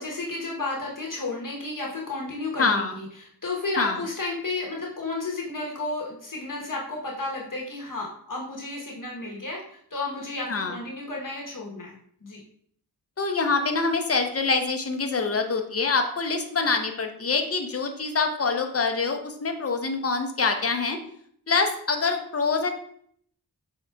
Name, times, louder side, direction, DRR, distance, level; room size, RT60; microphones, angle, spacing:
voice 1, 0.0-11.9 12.2-12.4, left 2 dB, 55° left, -2 dB, 1.0 m, -32 dB
voice 2, 2.6-2.9 3.8-4.0 10.5-10.8 13.2-21.0 21.5-22.7, left 4 dB, 35° left, 5 dB, 0.7 m, -25 dB
5.8 x 3.7 x 2.3 m, 0.64 s
wide cardioid pair, 60°, 39 cm